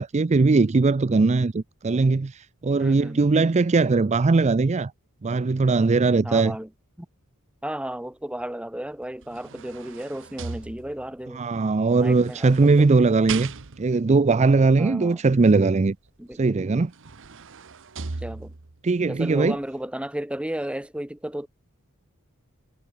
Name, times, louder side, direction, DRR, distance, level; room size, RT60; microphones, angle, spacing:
voice 1, 0.0-4.9 5.2-6.5 11.3-16.0 16.3-16.9 18.8-19.6, right 3 dB, 30° right, 0.5 m, -20 dB
voice 2, 2.8-3.2 6.2-6.7 7.0-7.1 7.6-11.4 11.9-12.9 14.8-15.2 16.2-16.6 18.2-18.5 19.1-21.5, right 1 dB, 5° right, 1.0 m, -33 dB
sound 1, 9.0-11.2 12.1-14.1 16.3-16.4 16.8-18.8 19.3-19.5, right 5 dB, 60° right, 1.1 m, -38 dB
head